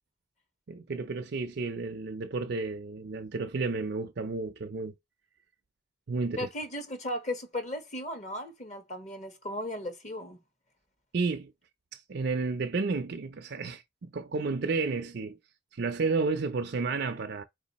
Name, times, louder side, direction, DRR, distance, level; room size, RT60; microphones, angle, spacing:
voice 1, 0.7-4.9 6.1-6.5 11.1-11.5 11.9-15.4 15.7-17.4, right 4 dB, 60° right, 0.5 m, -31 dB
voice 2, 6.4-10.4, left 1 dB, 40° left, 1.2 m, -36 dB
4.6 x 2.7 x 4.1 m
head